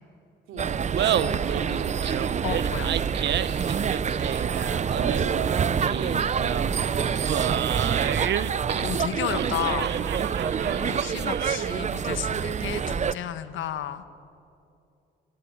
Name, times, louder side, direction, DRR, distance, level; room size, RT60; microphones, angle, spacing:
voice 1, 0.5-0.9 1.2-2.2 4.3-7.7 10.9-11.3, right 4 dB, 85° right, 4 dB, 3.6 m, -39 dB
sound 1, 0.6-13.2, right 7 dB, 35° right, 0.7 m, -27 dB
Laughter, 0.8-11.8, right 10 dB, 60° right, 0.9 m, -31 dB
voice 2, 2.4-3.0 8.8-9.9 10.8-14.0, left 11 dB, 75° left, 11 dB, 1.4 m, -32 dB
25.5 x 19.5 x 9.5 m, 2.6 s
cardioid pair, 90°, 20 cm